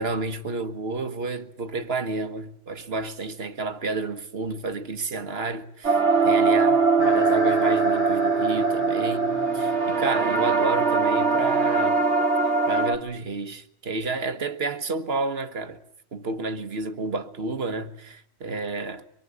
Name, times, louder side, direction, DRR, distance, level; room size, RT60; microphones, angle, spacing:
voice 1, 0.0-9.3 9.5-12.0 12.4-15.8 16.1-19.0, right 3 dB, 65° right, 1.7 m, -30 dB
sound 1, 5.8-13.0, right 4 dB, 80° right, 2.3 m, -21 dB
sound 2, 7.0-12.8, left 4 dB, 55° left, 1.8 m, -38 dB
25.0 x 23.0 x 9.7 m
omnidirectional pair, 1.1 m